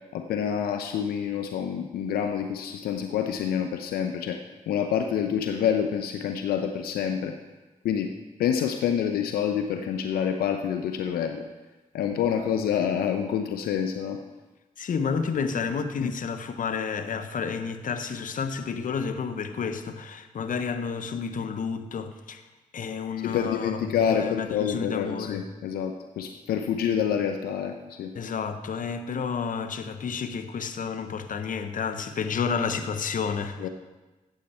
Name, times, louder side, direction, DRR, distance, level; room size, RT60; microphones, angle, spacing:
voice 1, 0.1-4.4 4.7-7.4 7.8-8.1 8.4-11.4 11.9-14.2 16.0-16.1 23.2-28.1 33.6-33.7, left 8 dB, 85° left, 0.7 m, -27 dB
voice 2, 14.8-22.4 22.7-23.8 24.1-25.4 28.2-33.7, left 6 dB, 60° left, 1.0 m, -30 dB
14.5 x 8.3 x 4.4 m
supercardioid pair, 50°, 15 cm